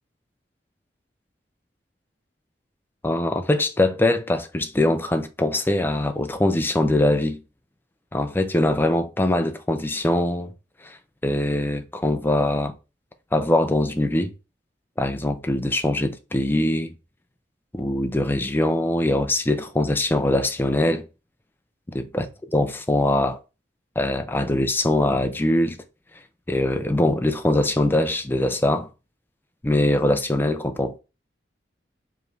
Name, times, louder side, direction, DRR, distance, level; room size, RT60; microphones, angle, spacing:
voice 1, 3.0-7.4 8.1-10.5 10.8-11.0 11.2-12.7 13.3-14.3 15.0-16.9 17.7-21.0 21.9-22.3 22.5-23.4 24.0-25.8 26.5-28.9 29.6-31.0, left 1 dB, 10° left, 0.4 m, -22 dB
4.8 x 3.1 x 2.6 m
head